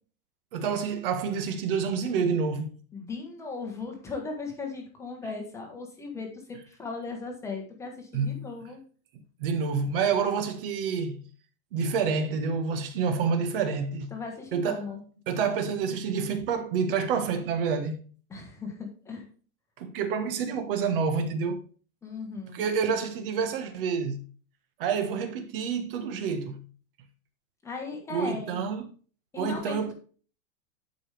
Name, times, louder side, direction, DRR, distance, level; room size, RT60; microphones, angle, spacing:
voice 1, 0.5-2.8 8.1-8.4 9.4-11.2 11.7-14.1 14.5-18.1 19.8-21.6 22.5-24.2 24.8-26.6 28.1-28.9 29.4-29.9, right 6 dB, 40° right, 1.3 m, -28 dB
voice 2, 2.9-8.8 14.1-15.0 18.3-19.2 22.0-22.7 27.6-28.6 29.3-29.9, left 4 dB, 5° left, 1.1 m, -37 dB
11.0 x 5.2 x 3.3 m
supercardioid pair, 180°, 41 cm